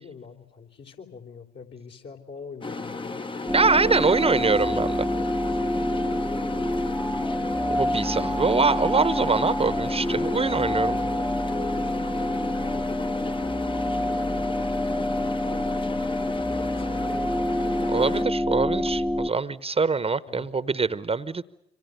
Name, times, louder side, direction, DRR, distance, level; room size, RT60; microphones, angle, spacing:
voice 1, 0.0-3.2 3.8-7.2 9.9-17.3 20.3-20.5, left 5 dB, 60° left, 3.8 m, -44 dB
sound 1, 2.6-18.2, left 3 dB, 25° left, 1.0 m, -34 dB
sound 2, 3.5-19.3, left 1 dB, ahead, 1.0 m, -27 dB
voice 2, 3.5-4.9 7.7-10.9 17.9-21.4, right 4 dB, 30° right, 1.0 m, -24 dB
27.0 x 25.5 x 6.7 m
hypercardioid pair, 45°, 20 cm